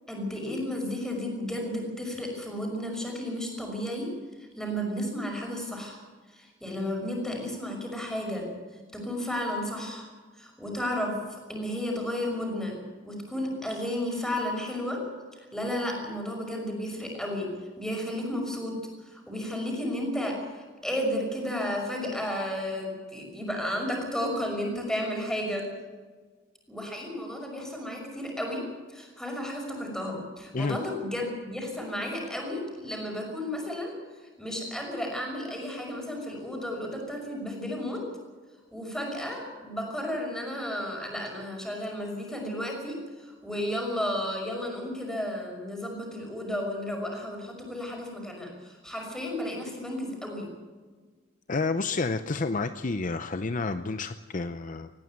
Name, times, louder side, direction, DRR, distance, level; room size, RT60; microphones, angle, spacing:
voice 1, 0.1-4.1 4.4-6.0 6.3-8.5 8.9-10.1 10.4-11.2 11.5-12.8 13.0-15.0 15.4-17.5 17.8-18.7 19.0-25.6 26.7-28.6 28.9-33.9 34.4-38.0 38.7-50.5, left 1 dB, 5° left, 1 dB, 6.0 m, -33 dB
voice 2, 51.5-54.9, left 3 dB, 40° left, 10 dB, 0.6 m, -30 dB
19.5 x 15.5 x 9.5 m, 1.4 s
head